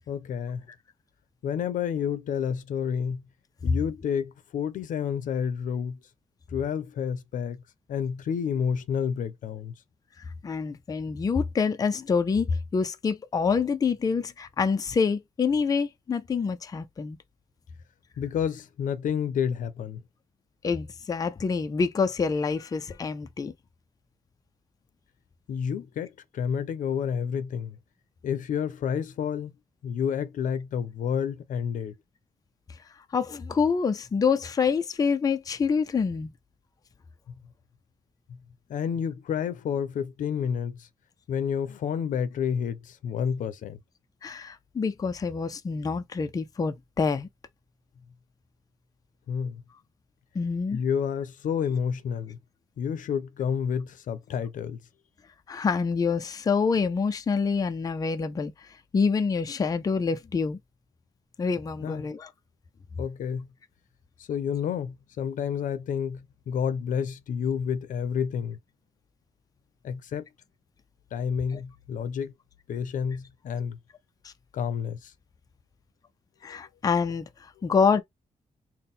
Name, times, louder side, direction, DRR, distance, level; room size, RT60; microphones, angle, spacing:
voice 1, 0.1-0.6 1.4-3.2 3.6-6.0 6.5-7.6 7.9-9.7 18.2-20.0 25.5-27.8 28.2-29.5 29.8-31.9 37.3-37.4 38.7-40.9 41.3-43.8 49.3-49.6 50.7-52.4 52.8-54.8 61.8-62.0 63.0-63.5 64.3-68.6 69.8-70.2 71.1-72.3 72.7-73.8 74.5-75.1 76.5-76.6, left 7 dB, 85° left, 0.6 m, -30 dB
voice 2, 10.4-17.2 20.6-23.5 33.1-36.3 44.2-47.3 50.3-50.8 55.5-58.5 58.9-60.6 61.4-62.3 74.2-74.3 76.4-78.0, left 5 dB, 30° left, 0.4 m, -26 dB
4.2 x 2.1 x 3.5 m
wide cardioid pair, 140°, 13 cm